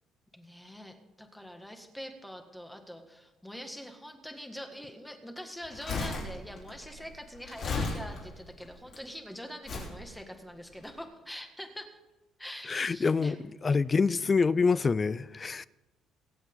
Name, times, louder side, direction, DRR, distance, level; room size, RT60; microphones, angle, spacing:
voice 1, 0.3-12.0 12.4-13.4, equal, 5° left, 1.7 m, -44 dB
Crumpling crinkling, 5.6-9.0 9.6-10.0 10.7-10.8, left 3 dB, 60° left, 5.4 m, -35 dB
voice 2, 12.7-13.4 13.6-15.7, left 4 dB, 30° left, 0.4 m, -26 dB
24.0 x 8.1 x 3.9 m
cardioid pair, 105°, 0 cm